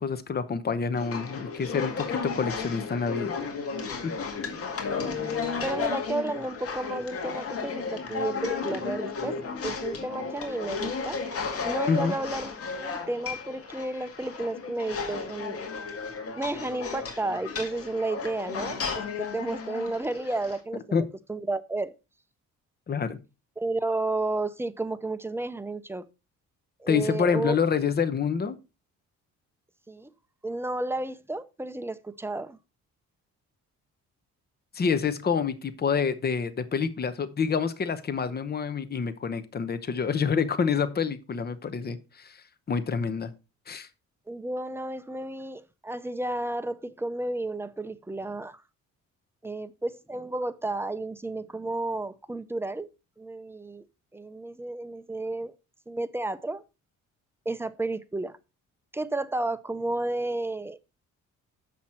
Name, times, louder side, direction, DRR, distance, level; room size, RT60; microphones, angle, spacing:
voice 1, 0.0-3.3 4.0-4.1 11.9-12.1 20.9-21.1 22.9-23.2 26.9-28.6 34.7-42.4 42.7-43.3 43.7-43.9, left 6 dB, 30° left, 0.9 m, -27 dB
sound 1, 0.9-20.6, left 5 dB, 50° left, 2.0 m, -34 dB
voice 2, 5.6-9.4 9.6-11.2 11.6-12.5 12.8-15.6 16.4-18.8 19.2-20.8 21.3-21.9 23.6-26.1 26.8-27.6 29.9-30.1 30.4-32.6 44.3-48.6 49.4-52.9 53.2-53.8 54.1-55.5 55.9-56.6 57.5-58.3 58.9-60.8, right 2 dB, 10° right, 0.6 m, -32 dB
7.2 x 6.1 x 4.3 m
cardioid pair, 90°, 30 cm